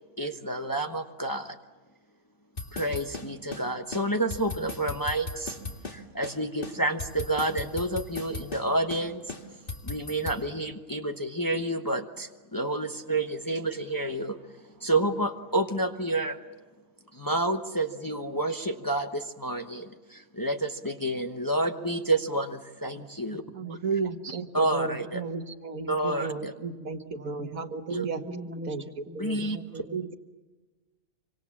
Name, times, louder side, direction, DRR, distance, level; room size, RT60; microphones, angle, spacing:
voice 1, 0.2-1.6 2.7-5.6 5.9-9.2 9.8-14.4 14.8-16.4 17.1-23.4 24.5-25.2 25.9-26.5 27.9-28.0 29.2-29.6, right 1 dB, 15° left, 5 dB, 1.0 m, -29 dB
sound 1, 2.6-3.7 3.9-4.0 4.3-6.0 6.2-6.4 6.6-8.7 8.9-9.0 9.3-10.4, left 3 dB, 40° left, 2.1 m, -37 dB
voice 2, 23.5-28.2 28.7-30.1, right 4 dB, 75° right, 7 dB, 1.8 m, -34 dB
voice 3, 26.2-26.9 27.2-27.6 28.2-28.7 29.1-30.1, equal, 10° right, 6 dB, 1.1 m, -43 dB
26.0 x 25.5 x 7.4 m, 1.3 s
omnidirectional pair, 1.5 m